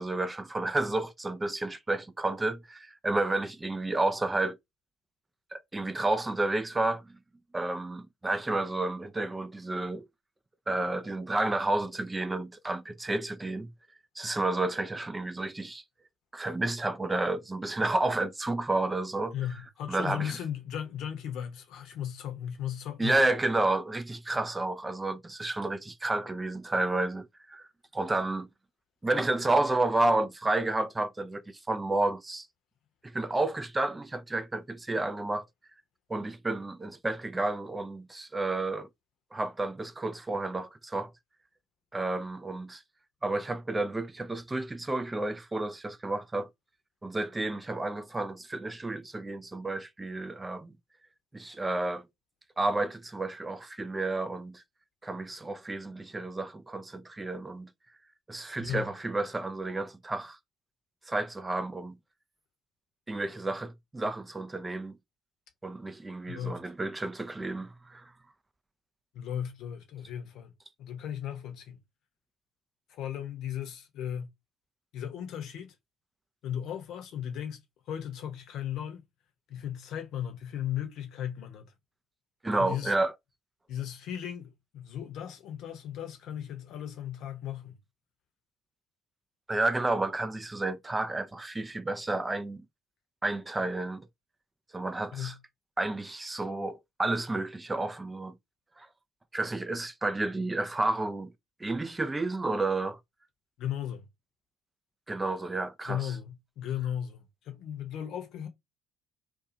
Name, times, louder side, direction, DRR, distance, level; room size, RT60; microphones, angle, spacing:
voice 1, 0.0-4.6 5.5-7.0 7.5-10.1 10.7-13.7 14.2-15.8 16.3-19.3 19.9-20.3 23.0-27.7 27.9-28.5 29.0-32.5 33.0-35.5 36.1-38.9 39.3-41.1 41.9-42.8 43.2-46.5 47.0-50.7 51.3-52.0 52.6-54.6 55.0-57.7 58.3-60.4 61.1-62.0 63.1-65.0 65.6-68.1 82.4-83.1 89.5-92.6 93.2-94.0 94.7-95.3 95.8-98.3 98.8-98.9 99.3-101.3 101.6-103.0 105.1-106.1, right 2 dB, 20° right, 0.4 m, -31 dB
voice 2, 19.3-23.2 58.6-58.9 66.3-66.6 69.1-70.5 70.8-71.8 72.9-74.3 74.9-75.8 76.4-79.0 79.5-81.7 82.6-82.9 83.7-87.8 95.1-95.4 103.6-104.0 105.9-108.5, left 10 dB, 60° left, 0.8 m, -36 dB
2.5 x 2.3 x 2.7 m
figure-of-eight pair, 50°, 0 cm